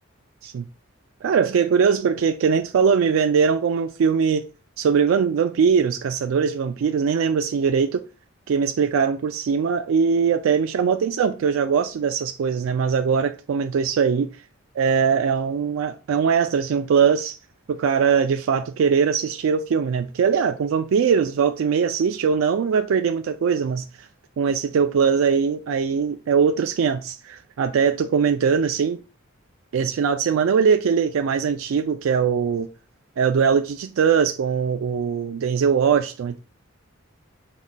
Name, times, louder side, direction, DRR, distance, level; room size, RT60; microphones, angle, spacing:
voice 1, 1.2-4.5 4.8-8.0 8.5-14.3 14.8-17.4 17.7-24.1 24.4-29.0 29.7-32.7 33.2-36.4, right 6 dB, 75° right, 0.3 m, -21 dB
6.0 x 4.0 x 2.2 m
head